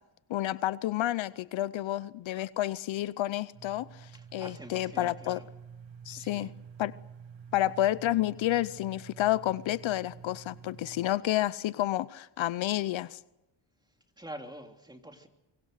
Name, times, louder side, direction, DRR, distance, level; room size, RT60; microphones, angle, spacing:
voice 1, 0.3-5.4 6.1-6.5 6.8-6.9 7.5-13.2, left 14 dB, 70° left, 18 dB, 0.7 m, -30 dB
sound 1, 3.5-11.1, right 7 dB, 70° right, 2.0 m, -49 dB
voice 2, 4.1-5.5 6.1-6.5 14.2-15.3, right 1 dB, 10° right, 4 dB, 2.9 m, -46 dB
24.0 x 23.5 x 6.5 m, 0.97 s
cardioid pair, 100°, 48 cm